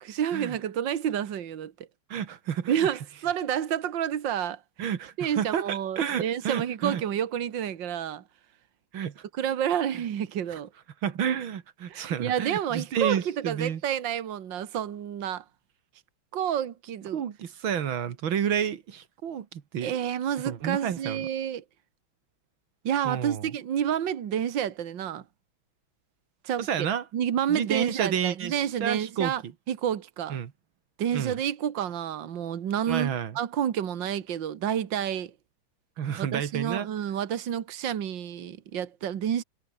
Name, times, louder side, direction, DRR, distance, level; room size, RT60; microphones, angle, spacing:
voice 1, 0.0-1.7 2.7-4.6 5.2-8.2 9.4-10.7 11.9-15.4 16.3-17.2 19.8-21.6 22.8-25.2 26.4-26.7 27.1-29.4 29.7-30.4 31.0-35.3 36.2-39.4, right 9 dB, 70° right, 2.1 m, -29 dB
voice 2, 2.1-2.9 4.8-7.0 8.9-9.2 10.5-10.6 11.0-13.8 17.1-19.9 20.4-21.3 23.1-23.5 26.6-27.0 27.5-29.5 30.3-30.5 31.1-31.4 32.9-33.4 36.0-36.9, right 8 dB, 85° right, 2.4 m, -30 dB
omnidirectional pair, 2.1 m